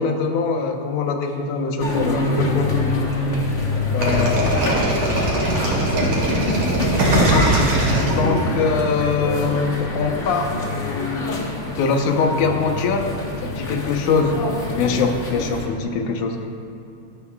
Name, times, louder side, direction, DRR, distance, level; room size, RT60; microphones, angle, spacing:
voice 1, 0.0-2.7 3.9-4.4 7.3-13.1 13.4-14.3 14.8-16.6, left 4 dB, 90° left, 3 dB, 2.5 m, -23 dB
sound 1, 1.8-15.7, left 2 dB, 45° left, 0.9 m, -25 dB
voice 2, 3.1-3.7 4.0-4.9 5.8-6.3 15.0-15.2, right 2 dB, 50° right, -3 dB, 3.3 m, -32 dB
sound 2, 4.0-8.8, right 2 dB, 75° right, 3.8 m, -21 dB
19.0 x 13.0 x 2.4 m, 2.6 s
omnidirectional pair, 3.4 m